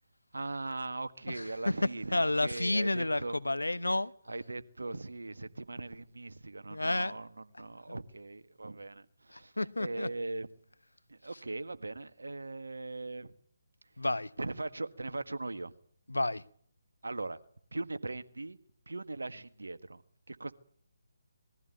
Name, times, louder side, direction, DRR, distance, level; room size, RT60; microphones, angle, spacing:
voice 1, 0.3-3.4 4.3-10.5 11.1-13.3 14.4-15.7 17.0-17.4 17.7-18.6 18.9-20.0 20.3-20.5, right 2 dB, 75° right, 1.6 m, -39 dB
voice 2, 2.1-4.1 6.7-7.1 9.6-10.1 14.0-14.3 16.1-16.4, left 2 dB, 85° left, 1.0 m, -30 dB
21.5 x 15.0 x 9.5 m
figure-of-eight pair, 145°, 0 cm